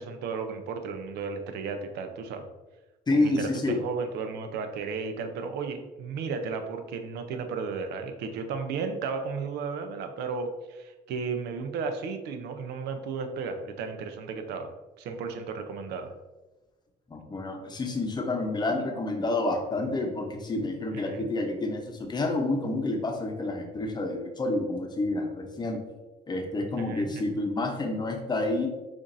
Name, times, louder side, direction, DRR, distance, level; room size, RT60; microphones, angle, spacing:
voice 1, 0.0-2.5 3.1-16.1 20.9-21.3 26.8-27.2, right 5 dB, 75° right, 7 dB, 0.6 m, -34 dB
voice 2, 3.1-3.8 17.1-25.8 26.3-28.7, left 2 dB, 25° left, 3 dB, 0.8 m, -29 dB
7.0 x 2.5 x 2.6 m, 1.1 s
cardioid pair, 110°, 17 cm